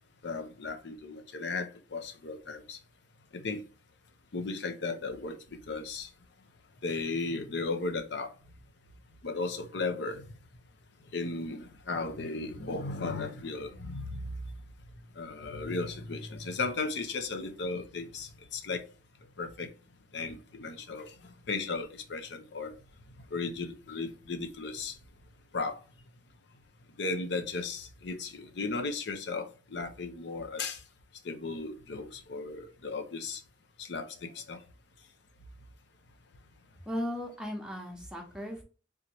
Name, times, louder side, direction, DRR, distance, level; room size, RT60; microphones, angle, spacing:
voice 1, 0.2-2.8 3.3-3.6 4.3-6.1 6.8-8.3 9.2-10.3 11.1-14.3 15.2-18.8 19.4-19.7 20.1-22.7 23.3-25.0 25.5-25.8 27.0-30.8 31.2-33.4 33.8-34.6, left 3 dB, 65° left, 0.6 m, -35 dB
voice 2, 36.8-38.6, equal, 5° right, 0.9 m, -36 dB
3.5 x 2.9 x 2.9 m
head